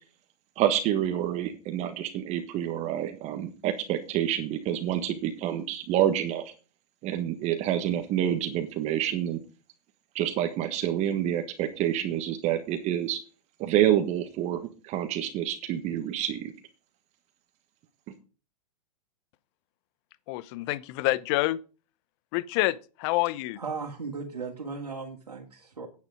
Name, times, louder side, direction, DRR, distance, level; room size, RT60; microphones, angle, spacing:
voice 1, 0.6-6.5 7.0-9.4 10.1-13.2 13.6-16.5, right 11 dB, 35° right, 1.4 m, -28 dB
voice 2, 20.3-21.6 22.3-23.6, left 18 dB, 45° left, 0.8 m, -27 dB
voice 3, 23.6-25.9, right 4 dB, 85° right, 2.5 m, -36 dB
9.4 x 9.1 x 5.0 m
hypercardioid pair, 110°, 20 cm